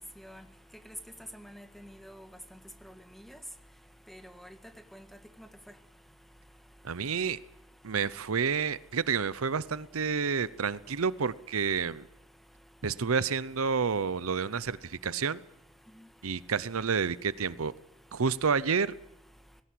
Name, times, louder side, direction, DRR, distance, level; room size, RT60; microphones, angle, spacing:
voice 1, 1.3-2.3 2.8-2.9 3.2-3.4 4.1-4.5 4.9-5.0 5.4-5.5, equal, ahead, 1.6 m, -48 dB
voice 2, 6.8-7.4 7.8-12.1 12.8-15.4 16.2-17.7 18.1-18.9, right 5 dB, 90° right, 0.8 m, -29 dB
19.5 x 17.5 x 8.5 m
head